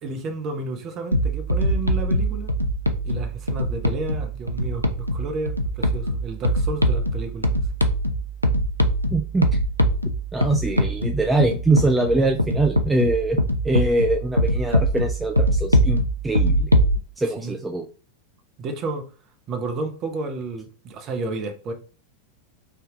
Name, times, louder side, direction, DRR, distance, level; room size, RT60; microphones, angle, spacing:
voice 1, 0.0-2.5 3.0-7.7 17.2-17.6 18.6-19.1 19.5-21.7, right 2 dB, 35° right, 0.9 m, -31 dB
sound 1, 1.1-17.0, equal, 90° left, 0.4 m, -23 dB
voice 2, 9.1-9.5 10.3-13.4 13.6-16.7 17.2-17.9, right 2 dB, 10° right, 0.4 m, -23 dB
3.5 x 2.7 x 3.7 m
figure-of-eight pair, 90°, 0 cm